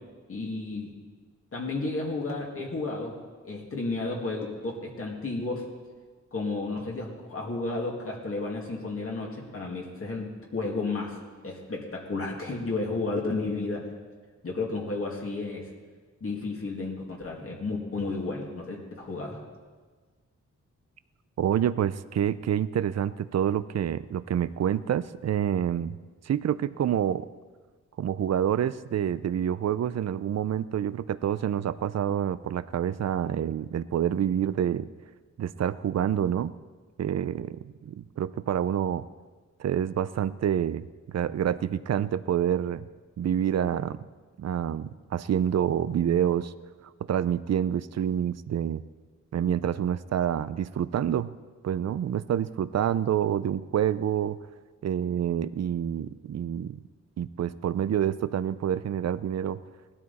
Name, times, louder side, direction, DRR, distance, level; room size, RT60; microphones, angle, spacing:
voice 1, 0.3-0.9 1.5-3.2 3.4-5.7 6.3-11.2 11.4-13.9 14.4-15.7 16.2-19.4, left 3 dB, 45° left, -2 dB, 2.2 m, -32 dB
voice 2, 21.4-26.0 26.3-27.3 28.0-34.9 35.4-36.5 37.0-39.1 39.6-42.9 43.2-44.0 44.4-46.5 47.1-48.8 49.3-51.3 51.6-54.4 54.8-56.8 57.2-59.6, right 9 dB, 60° right, 15 dB, 0.5 m, -27 dB
19.0 x 12.5 x 4.1 m, 1.4 s
wide cardioid pair, 135°, 30 cm